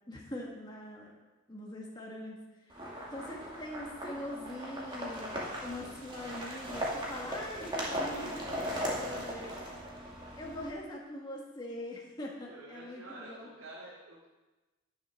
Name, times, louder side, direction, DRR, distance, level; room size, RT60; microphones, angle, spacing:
voice 1, 0.1-1.1 1.5-2.4 2.7-2.8 3.1-5.3 5.6-9.5 10.3-13.5, left 1 dB, 20° left, -2 dB, 1.5 m, -42 dB
sound 1, 2.7-10.7, equal, 20° right, 2.2 m, -38 dB
voice 2, 9.0-10.0 12.5-14.3, right 1 dB, 80° right, -5 dB, 2.6 m, -50 dB
11.0 x 7.0 x 6.3 m, 1.1 s
head